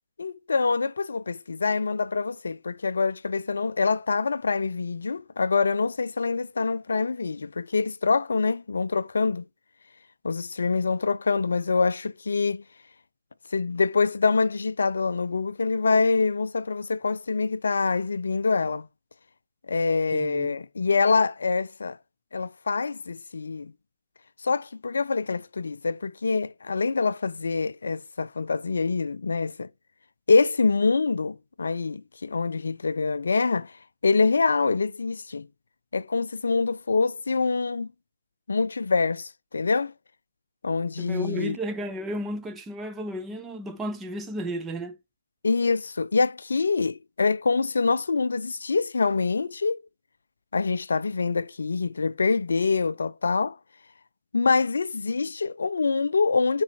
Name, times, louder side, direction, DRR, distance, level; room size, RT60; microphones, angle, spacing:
voice 1, 0.2-9.4 10.2-12.6 13.5-18.9 19.7-22.0 22.3-23.7 24.4-29.7 30.3-33.7 34.0-35.5 35.9-37.9 38.5-39.9 40.6-41.6 45.4-49.8 50.5-53.6 54.3-56.6, left 4 dB, 55° left, 0.4 m, -25 dB
voice 2, 20.1-20.5 41.0-45.0, equal, 5° right, 0.4 m, -33 dB
8.6 x 4.0 x 4.2 m
figure-of-eight pair, 150°, 0 cm